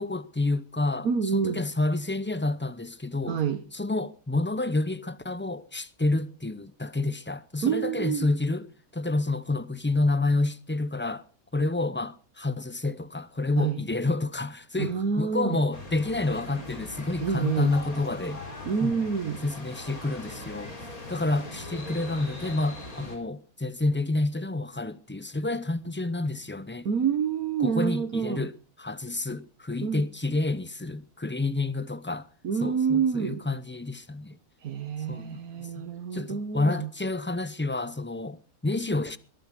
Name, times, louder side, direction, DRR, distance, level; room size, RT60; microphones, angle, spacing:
voice 1, 0.0-3.4 3.7-11.2 11.5-18.4 18.8-19.1 19.4-26.9 27.6-28.5 28.8-32.3 32.6-34.4 35.1-35.8 36.1-39.2, left 2 dB, 20° left, 0.3 m, -29 dB
voice 2, 1.0-1.6 3.3-3.6 7.6-8.3 13.6-13.8 14.8-15.6 17.2-17.7 18.6-19.4 26.8-28.5 29.8-30.0 32.4-33.4 34.6-36.9, right 6 dB, 90° right, 1.6 m, -27 dB
sound 1, 15.7-23.2, left 2 dB, 85° left, 4.5 m, -40 dB
21.0 x 11.5 x 5.1 m
omnidirectional pair, 1.5 m